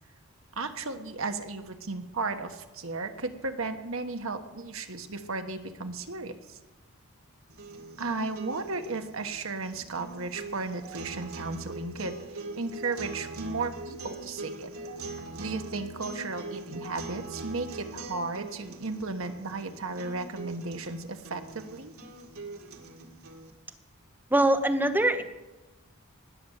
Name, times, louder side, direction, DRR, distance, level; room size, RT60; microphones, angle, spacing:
voice 1, 0.6-6.6 8.0-12.2 12.5-14.7 15.4-21.9, right 3 dB, 65° right, 6 dB, 1.2 m, -35 dB
sound 1, 7.5-23.5, right 2 dB, 85° right, 1.9 m, -42 dB
voice 2, 24.3-25.2, right 1 dB, 10° right, 6 dB, 0.9 m, -23 dB
19.5 x 6.7 x 7.4 m, 1.1 s
head